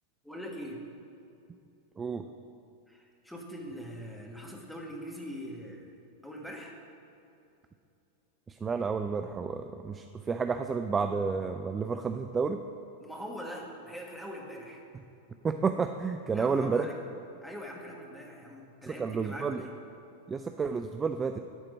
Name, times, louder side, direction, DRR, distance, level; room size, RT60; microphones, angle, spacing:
voice 1, 0.2-0.8 2.9-5.9 6.2-6.8 13.0-14.8 16.3-16.9 17.4-19.7, equal, 5° left, -1 dB, 1.7 m, -42 dB
voice 2, 8.5-12.6 15.4-16.9 18.8-19.6 20.3-21.4, right 5 dB, 20° right, 7 dB, 0.4 m, -31 dB
12.5 x 4.4 x 7.3 m, 2.7 s
figure-of-eight pair, 90°, 0 cm